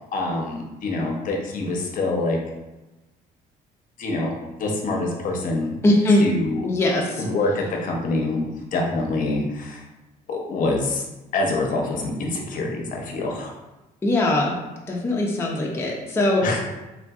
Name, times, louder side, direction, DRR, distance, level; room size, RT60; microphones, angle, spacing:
voice 1, 0.0-2.4 4.0-4.3 4.6-5.7 6.2-6.6 7.2-9.8 10.3-11.0 11.3-13.5 16.4-16.6, left 2 dB, 50° left, 0 dB, 0.7 m, -25 dB
voice 2, 5.8-6.3 6.6-7.2 14.0-14.5 14.9-16.4, left 1 dB, 15° left, -2 dB, 0.4 m, -20 dB
3.4 x 2.5 x 2.3 m, 1.0 s
cardioid pair, 110°, 17 cm